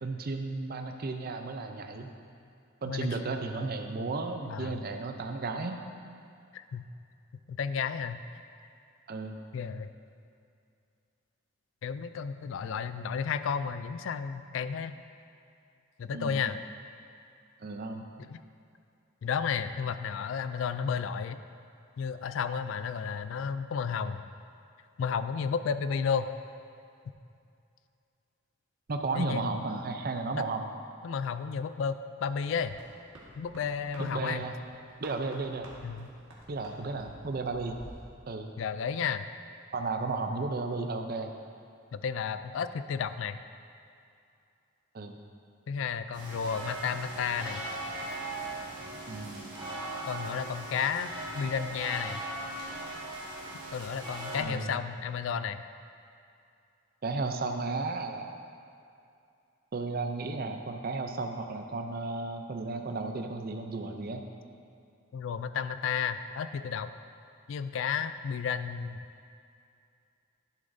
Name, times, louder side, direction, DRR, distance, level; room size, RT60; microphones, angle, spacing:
voice 1, 0.0-2.1 2.8-5.8 9.1-9.4 16.1-16.4 17.6-18.1 28.9-30.7 34.0-34.5 35.0-35.7 36.5-37.8 38.3-38.5 39.7-41.3 44.9-45.2 49.1-49.6 54.4-54.7 57.0-58.3 59.7-64.2, right 3 dB, 45° right, 5 dB, 0.5 m, -34 dB
voice 2, 6.5-6.8 7.5-8.2 9.5-9.9 11.8-14.9 16.0-16.6 18.2-18.4 19.2-21.4 22.0-24.2 25.0-26.3 29.1-29.5 31.0-32.7 33.4-34.4 35.8-36.1 38.6-39.3 41.9-43.4 45.7-47.6 50.1-52.2 53.7-55.6 65.1-66.9 67.5-69.0, left 6 dB, 65° left, 11 dB, 0.3 m, -32 dB
sound 1, 32.6-38.0, right 1 dB, 65° right, 1.6 m, -52 dB
sound 2, 46.1-54.4, right 2 dB, 20° right, 1.7 m, -39 dB
11.0 x 7.3 x 2.7 m, 2.5 s
head